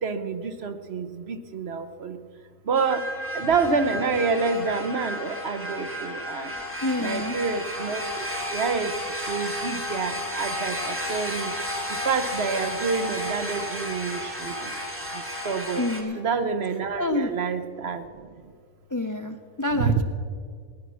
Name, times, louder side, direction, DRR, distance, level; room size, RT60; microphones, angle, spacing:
voice 1, 0.0-2.2 2.7-3.0 3.3-6.5 7.0-8.2 8.5-8.9 9.3-11.5 12.0-14.7 15.4-15.8 16.2-18.0 19.7-20.0, right 5 dB, 55° right, 8 dB, 1.0 m, -27 dB
sound 1, 2.7-16.0, equal, 10° right, 2.0 m, -33 dB
voice 2, 6.8-7.4 15.8-16.2 17.0-17.3 18.9-20.0, left 2 dB, 25° left, 7 dB, 0.4 m, -27 dB
18.5 x 10.5 x 6.2 m, 2.1 s
omnidirectional pair, 1.4 m